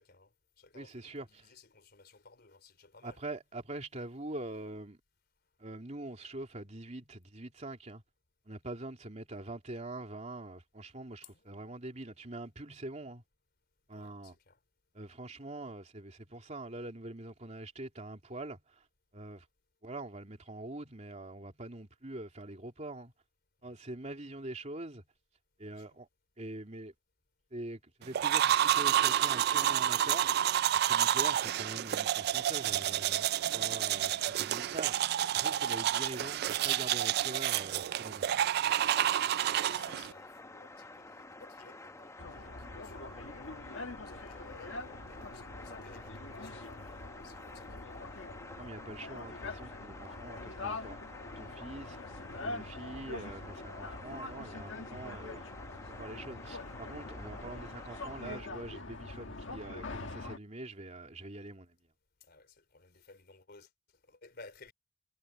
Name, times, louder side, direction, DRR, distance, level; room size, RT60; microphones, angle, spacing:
voice 1, 0.0-3.2 11.2-11.6 13.9-14.6 23.6-23.8 25.7-26.0 39.4-48.1 50.0-50.1 52.8-52.9 62.2-63.7 64.0-64.7, left 3 dB, 55° left, 4.0 m, -57 dB
voice 2, 0.7-1.3 3.0-5.0 5.6-8.0 8.5-13.2 13.9-14.4 14.9-18.8 19.1-19.5 19.8-23.1 23.6-25.0 25.6-26.1 26.4-26.9 27.5-34.1 34.4-38.4 48.6-51.0 51.4-52.0 52.4-55.5 55.9-61.8, right 2 dB, 35° right, 3.0 m, -44 dB
sound 1, 28.1-40.1, right 11 dB, 55° right, 0.3 m, -29 dB
sound 2, 38.7-58.4, left 2 dB, 15° left, 1.1 m, -50 dB
sound 3, 42.2-60.4, left 2 dB, 80° left, 1.7 m, -44 dB
head